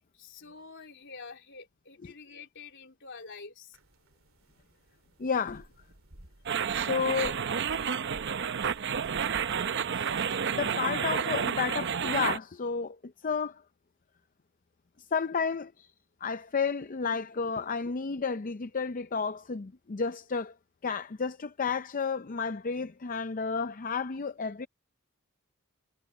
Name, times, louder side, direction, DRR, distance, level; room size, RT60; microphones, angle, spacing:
voice 1, 0.0-3.8, left 4 dB, 60° left, 3.7 m, -47 dB
sound 1, 3.7-10.7, right 1 dB, 75° right, 2.6 m, -53 dB
voice 2, 5.2-5.7 6.7-7.4 9.9-10.2 10.5-13.0 13.2-13.6 15.1-15.9 16.2-20.5 20.8-24.7, left 5 dB, 40° left, 0.5 m, -31 dB
sound 2, 6.5-12.4, right 7 dB, 60° right, 0.7 m, -30 dB
head